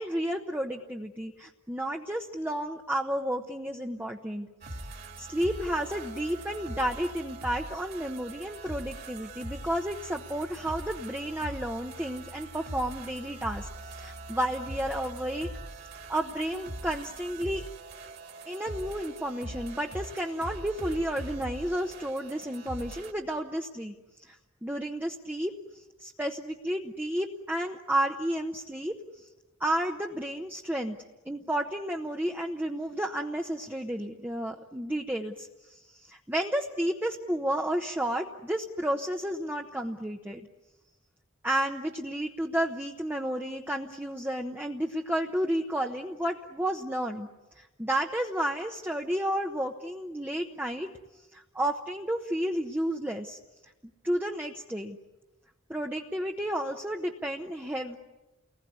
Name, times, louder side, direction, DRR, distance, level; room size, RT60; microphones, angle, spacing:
voice 1, 0.0-4.5 5.2-15.5 16.1-17.7 18.5-29.3 29.6-31.0 31.3-40.4 41.4-47.3 47.6-50.9 51.3-53.4 54.0-55.0 55.7-58.0, right 1 dB, 10° right, 1 dB, 0.9 m, -32 dB
sound 1, 4.6-23.1, right 2 dB, 45° right, 2.6 m, -42 dB
30.0 x 20.5 x 9.6 m, 1.1 s
head